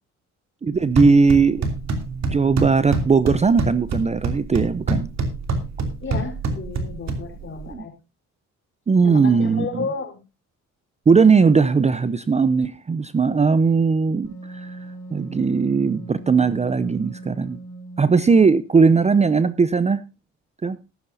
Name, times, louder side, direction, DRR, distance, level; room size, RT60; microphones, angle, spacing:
voice 1, 0.6-1.7 2.2-5.1 7.7-7.9 8.9-9.9 11.1-17.6 18.0-20.0 20.6-20.8, right 5 dB, 20° right, 0.6 m, -18 dB
sound 1, 0.7-7.7, right 3 dB, 65° right, 2.8 m, -27 dB
voice 2, 6.0-7.9 9.0-10.2, left 4 dB, 40° left, 4.1 m, -32 dB
Wind instrument woodwind instrument, 14.2-18.7, right 2 dB, 75° left, 5.9 m, -39 dB
13.5 x 13.0 x 2.7 m
cardioid pair, 90°, 30 cm